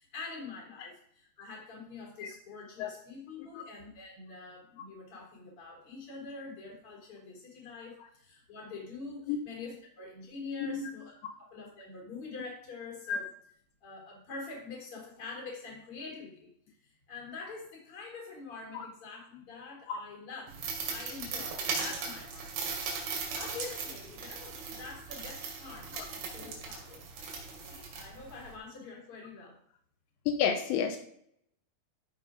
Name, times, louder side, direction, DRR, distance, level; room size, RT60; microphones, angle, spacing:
voice 1, 0.0-11.1 11.4-13.3 13.8-20.5 20.8-22.5 23.3-27.0 27.6-29.6, left 4 dB, 35° left, -1 dB, 4.1 m, -45 dB
sound 1, 20.5-28.5, right 5 dB, 80° right, 4.6 m, -38 dB
voice 2, 30.3-31.0, left 7 dB, 85° left, 6 dB, 3.1 m, -30 dB
14.0 x 6.0 x 5.1 m, 0.69 s
omnidirectional pair, 5.0 m